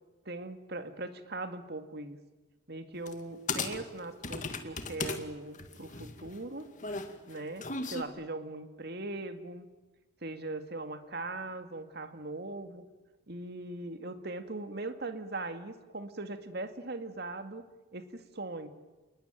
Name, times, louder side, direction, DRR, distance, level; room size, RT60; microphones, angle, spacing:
voice 1, 0.3-2.2 2.7-6.7 7.3-9.7 10.2-12.8 13.3-17.6 17.9-18.7, right 2 dB, 55° right, 8 dB, 2.2 m, -40 dB
sound 1, 3.1-3.2 3.5-5.2 5.5-8.0, left 4 dB, 40° left, 2.3 m, -36 dB
28.0 x 21.0 x 9.3 m, 1.2 s
head